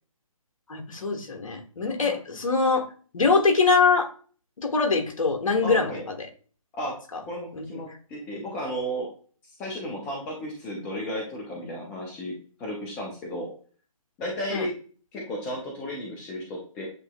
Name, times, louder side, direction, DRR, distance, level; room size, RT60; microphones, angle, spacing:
voice 1, 0.7-2.9 3.1-4.1 4.6-6.3 7.5-7.6 14.5-14.7, left 4 dB, 65° left, 4 dB, 1.2 m, -23 dB
voice 2, 5.6-6.0 6.7-6.9 7.3-9.1 9.6-12.3 12.6-13.5 14.2-14.7 15.1-16.9, equal, 5° left, -1 dB, 0.3 m, -33 dB
8.0 x 2.7 x 2.2 m, 0.41 s
figure-of-eight pair, 145°, 18 cm